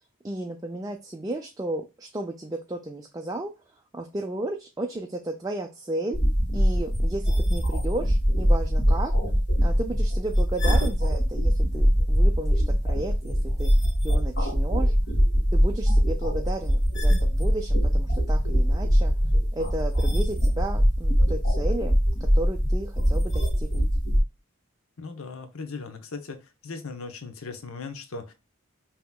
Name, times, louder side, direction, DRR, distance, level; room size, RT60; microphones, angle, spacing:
voice 1, 0.2-6.2 6.5-9.1 9.6-13.7 14.0-14.9 15.5-19.1 19.5-21.9 22.3-23.8, right 1 dB, 15° right, 3 dB, 0.4 m, -34 dB
sound 1, 6.1-24.2, equal, 50° left, 2.0 m, -22 dB
voice 2, 25.0-26.4 26.6-28.3, left 4 dB, 80° left, 8 dB, 0.8 m, -38 dB
5.6 x 2.9 x 2.3 m, 0.27 s
head